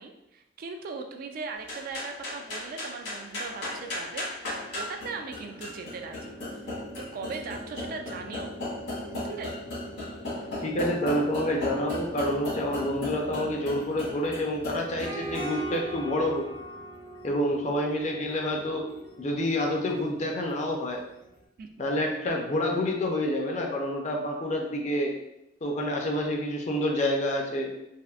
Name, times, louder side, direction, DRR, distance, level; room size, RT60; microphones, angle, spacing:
voice 1, 0.0-6.4 6.7-8.6 9.1-9.6 21.6-21.9, right 4 dB, 50° right, 4 dB, 0.3 m, -39 dB
sound 1, 1.6-21.1, left 1 dB, 75° left, 1.4 m, -37 dB
voice 2, 10.6-16.5 17.2-18.9 19.2-21.0 21.8-25.1 25.6-27.7, left 1 dB, 40° left, 1 dB, 0.5 m, -28 dB
3.4 x 2.5 x 2.4 m, 0.85 s
head